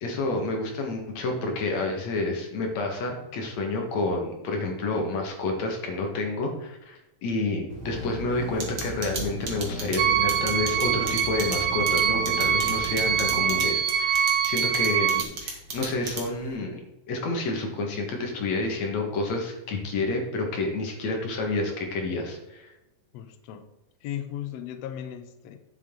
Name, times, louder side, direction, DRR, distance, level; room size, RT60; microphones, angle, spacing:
voice 1, 0.0-16.8 17.1-22.7, left 2 dB, 60° left, 1 dB, 2.6 m, -29 dB
sound 1, 7.7-13.6, right 1 dB, 20° right, 3.4 m, -37 dB
sound 2, 8.6-16.5, right 4 dB, 40° right, 2.0 m, -33 dB
sound 3, 10.0-15.2, right 8 dB, 90° right, 1.7 m, -24 dB
voice 2, 23.1-23.7 24.0-25.6, left 10 dB, 80° left, 8 dB, 1.5 m, -36 dB
9.3 x 7.7 x 3.8 m, 0.94 s
omnidirectional pair, 3.9 m